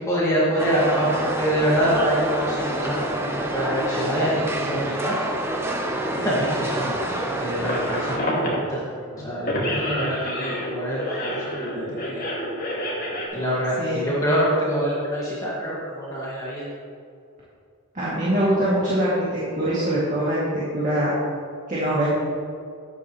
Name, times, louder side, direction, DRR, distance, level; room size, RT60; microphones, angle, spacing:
voice 1, 0.1-5.1 6.1-8.8 9.1-12.2 13.3-16.6, equal, 15° left, -7 dB, 2.0 m, -25 dB
sound 1, 0.6-8.2, right 1 dB, 10° right, 0.8 m, -27 dB
sound 2, 7.0-8.7 9.1-13.3, equal, 40° left, 2.2 m, -28 dB
voice 2, 17.9-21.1 21.7-22.1, right 1 dB, 35° right, -9 dB, 2.5 m, -23 dB
12.0 x 10.5 x 3.2 m, 2.4 s
head